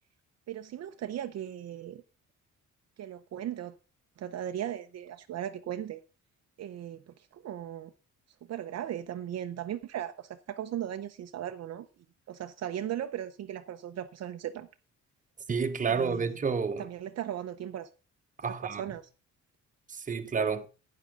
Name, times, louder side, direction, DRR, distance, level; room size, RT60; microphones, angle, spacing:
voice 1, 0.5-2.0 3.0-3.7 4.2-6.0 6.6-7.9 8.5-11.9 12.3-14.7 15.9-16.4 16.8-17.9 18.4-19.0, right 11 dB, 55° right, 0.7 m, -37 dB
voice 2, 15.5-16.9 18.4-18.8 19.9-20.7, right 5 dB, 25° right, 1.1 m, -30 dB
11.5 x 9.6 x 3.7 m
cardioid pair, 135°, 30 cm